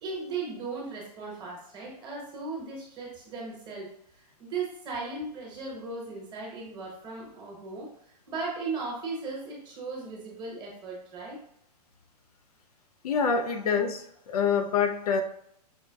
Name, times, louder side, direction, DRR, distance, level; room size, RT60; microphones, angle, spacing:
voice 1, 0.0-11.4 13.4-13.6, right 4 dB, 20° right, -2 dB, 1.0 m, -37 dB
voice 2, 13.0-15.2, left 6 dB, 65° left, 6 dB, 0.4 m, -26 dB
5.4 x 2.1 x 2.3 m, 0.72 s
hypercardioid pair, 135°, 21 cm